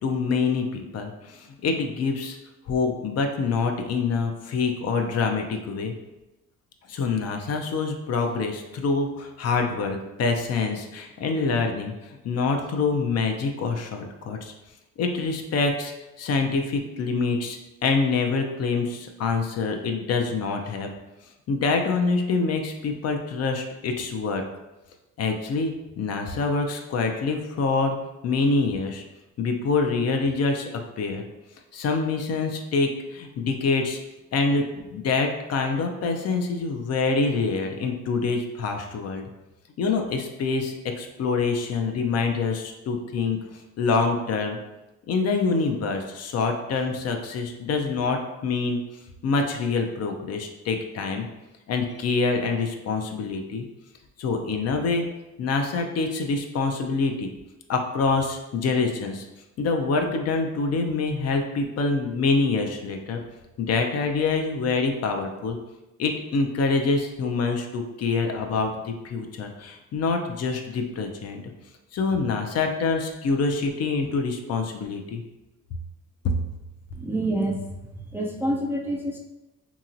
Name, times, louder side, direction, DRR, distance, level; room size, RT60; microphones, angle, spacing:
voice 1, 0.0-2.4 2.7-5.9 6.9-14.5 15.0-15.9 16.2-20.9 21.5-24.4 25.2-28.0 28.2-29.0 29.4-30.7 31.0-31.2 31.7-34.0 34.3-34.6 34.9-39.2 39.8-43.4 43.8-44.6 45.1-48.8 49.2-51.3 51.7-53.7 54.2-55.1 55.4-57.3 57.7-59.3 59.6-63.2 63.6-65.6 66.0-71.4 71.9-75.2 76.2-76.3, left 4 dB, 55° left, 4 dB, 0.5 m, -25 dB
voice 2, 76.9-79.2, right 1 dB, 10° right, -1 dB, 0.3 m, -28 dB
2.8 x 2.8 x 2.5 m, 1.0 s
cardioid pair, 90°, 30 cm